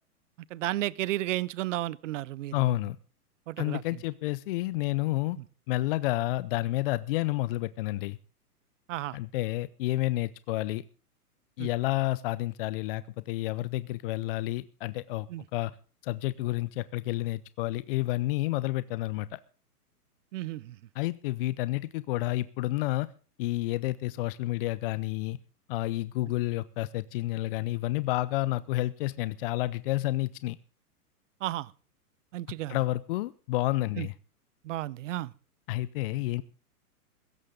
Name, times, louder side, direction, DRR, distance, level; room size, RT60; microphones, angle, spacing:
voice 1, 0.5-2.7 3.5-4.0 5.4-5.5 8.9-9.2 11.6-11.7 15.3-15.4 20.3-20.8 31.4-31.7 32.3-32.8 34.0-34.1 34.6-35.3, right 15 dB, 55° right, 0.8 m, -33 dB
voice 2, 2.5-3.0 3.6-5.4 5.7-8.2 9.1-10.8 11.6-15.3 15.5-15.7 16.0-19.4 21.0-23.1 23.4-25.4 25.7-30.6 32.7-34.1 35.7-36.4, left 17 dB, 40° left, 0.6 m, -30 dB
16.5 x 14.0 x 3.8 m
hypercardioid pair, 120°, 46 cm